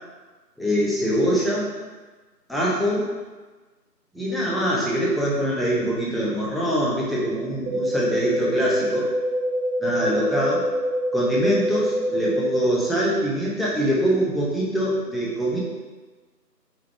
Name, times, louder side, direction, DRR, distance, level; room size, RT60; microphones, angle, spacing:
voice 1, 0.6-1.7 2.5-3.1 4.1-9.1 9.8-10.7 11.1-15.6, equal, ahead, -6 dB, 0.4 m, -23 dB
sound 1, 7.7-12.7, equal, 90° right, 1.0 m, -25 dB
3.4 x 2.2 x 3.2 m, 1.3 s
figure-of-eight pair, 170°, 49 cm